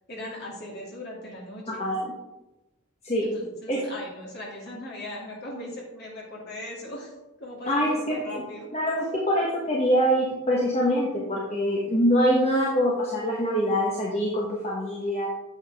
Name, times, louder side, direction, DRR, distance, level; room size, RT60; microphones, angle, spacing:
voice 1, 0.0-1.8 3.2-7.1 7.4-8.7, left 1 dB, 50° left, -3 dB, 2.5 m, -39 dB
voice 2, 1.8-2.1 3.0-3.3 3.7-3.8 7.7-8.0 8.3-8.4 8.7-15.3, equal, 30° left, -4 dB, 1.2 m, -24 dB
9.1 x 7.1 x 3.5 m, 1.0 s
head